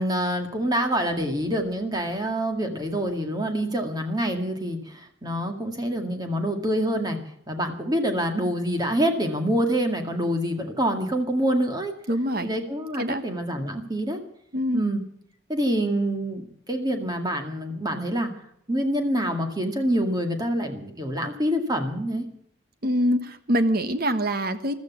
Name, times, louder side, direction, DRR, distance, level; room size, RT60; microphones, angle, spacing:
voice 1, 0.0-7.2 7.5-11.9 12.4-14.2 14.7-15.0 15.5-18.3 18.7-22.3, equal, 20° right, 4 dB, 2.0 m, -26 dB
voice 2, 12.1-12.5 13.0-13.2 14.5-14.8 22.8-24.8, equal, 45° right, 10 dB, 1.4 m, -24 dB
14.5 x 13.5 x 7.1 m, 0.71 s
head